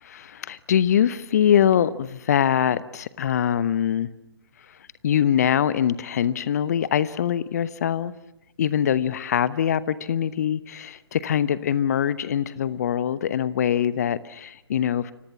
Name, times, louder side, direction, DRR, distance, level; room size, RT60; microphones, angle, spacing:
voice 1, 0.0-4.1 5.0-8.1 8.6-15.1, left 9 dB, 40° left, 1.0 m, -23 dB
29.5 x 26.0 x 7.2 m
figure-of-eight pair, 135°, 14 cm